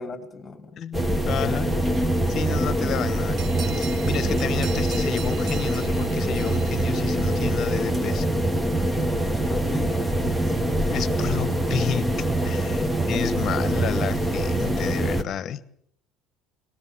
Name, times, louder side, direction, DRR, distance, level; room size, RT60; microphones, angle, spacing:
voice 1, 0.0-0.8 2.6-2.8 9.3-10.8 12.8-13.0, left 4 dB, 25° left, 2.3 m, -38 dB
voice 2, 0.8-1.7 2.3-3.4 3.7-8.3 10.9-12.8 13.1-15.6, left 9 dB, 45° left, 1.2 m, -31 dB
sound 1, 0.9-15.2, right 1 dB, 10° right, 1.4 m, -24 dB
sound 2, 3.4-7.6, right 6 dB, 35° right, 1.3 m, -41 dB
23.0 x 19.5 x 7.3 m
cardioid pair, 125°, 0 cm